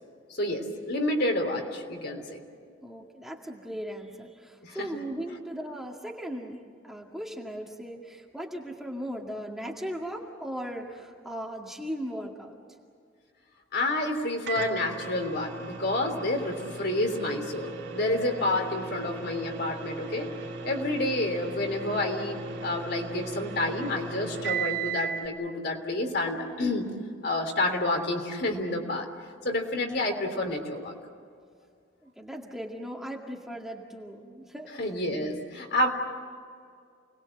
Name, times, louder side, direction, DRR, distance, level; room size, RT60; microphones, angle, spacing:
voice 1, 0.3-2.4 4.6-4.9 13.7-20.3 20.6-26.9 27.2-29.1 29.4-30.9 34.8-35.9, left 1 dB, 55° left, 3 dB, 3.3 m, -29 dB
voice 2, 2.8-6.6 6.8-12.6 32.0-34.7 35.2-35.3, equal, ahead, -1 dB, 2.1 m, -38 dB
Microwave oven, 14.5-25.2, right 5 dB, 65° right, 3.3 m, -37 dB
29.5 x 20.5 x 7.8 m, 2.2 s
head